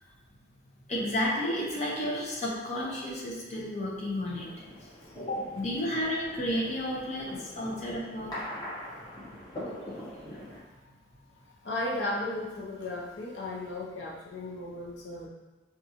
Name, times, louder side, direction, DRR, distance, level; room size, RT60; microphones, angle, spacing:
voice 1, 0.9-4.5 5.2-8.4, left 1 dB, 40° left, -5 dB, 0.8 m, -32 dB
sound 1, 4.3-10.6, left 1 dB, 20° left, 1.0 m, -42 dB
voice 2, 8.8-9.2 9.9-10.1 10.4-10.9 11.6-15.3, left 2 dB, 85° left, -4 dB, 0.7 m, -36 dB
5.2 x 2.4 x 2.9 m, 1.2 s
head